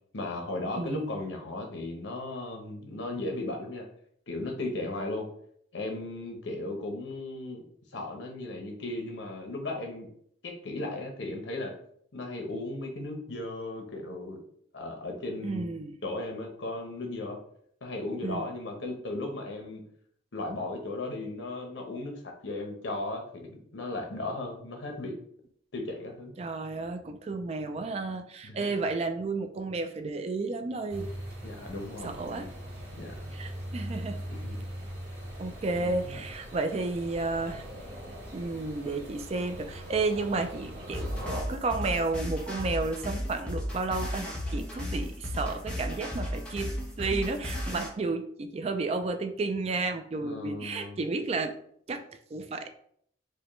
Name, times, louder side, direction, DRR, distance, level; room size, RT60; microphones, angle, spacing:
voice 1, 0.1-3.9 4.3-5.3 5.7-7.6 7.9-10.1 10.4-11.7 12.1-14.4 14.7-15.7 16.0-17.4 17.8-19.8 20.3-25.2 25.7-26.3 28.4-28.7 31.4-32.5 32.9-33.3 34.3-34.6 35.8-36.2 50.1-51.0, left 2 dB, 80° left, 2 dB, 0.9 m, -36 dB
voice 2, 0.8-1.1 15.4-15.9 18.2-18.5 26.4-31.1 32.0-32.5 33.3-34.2 35.4-37.6 38.3-41.1 41.5-46.7 47.0-51.5 51.9-52.0 52.3-52.7, right 3 dB, 35° right, 7 dB, 0.3 m, -32 dB
sound 1, 30.9-41.4, equal, 65° right, 1.4 m, -41 dB
sound 2, 40.9-47.9, left 1 dB, 5° left, 0.7 m, -34 dB
4.9 x 2.2 x 3.1 m, 0.65 s
head